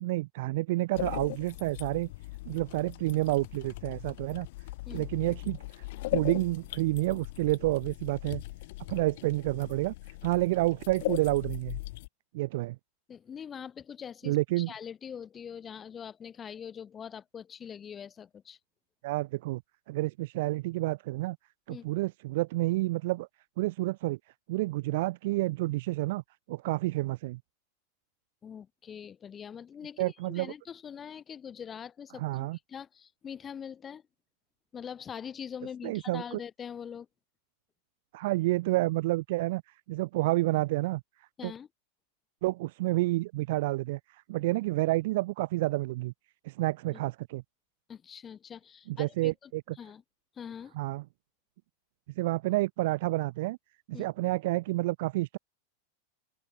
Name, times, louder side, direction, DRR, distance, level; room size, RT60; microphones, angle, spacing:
voice 1, 0.0-2.1 2.5-4.5 4.9-5.8 6.1-8.4 8.9-9.9 10.2-11.8 12.3-12.8 14.2-14.7 19.0-19.6 19.9-21.4 21.7-23.3 23.6-24.2 24.5-26.2 26.5-27.4 30.0-30.5 32.2-32.6 35.8-36.2 38.1-39.6 39.9-41.0 41.4-41.5 42.4-46.1 46.4-47.4 48.9-49.6 50.8-51.0 52.2-53.6 53.9-55.4, right 19 dB, 50° right, 0.6 m, -29 dB
sound 1, 0.9-12.1, left 19 dB, 50° left, 0.9 m, -39 dB
voice 2, 13.1-18.6 21.7-21.8 28.4-34.0 34.7-37.1 41.4-41.7 46.9-47.0 47.9-49.5 49.8-50.0 50.3-50.8 53.9-54.1, left 7 dB, 20° left, 3.1 m, -43 dB
open air
figure-of-eight pair, 90°, 0 cm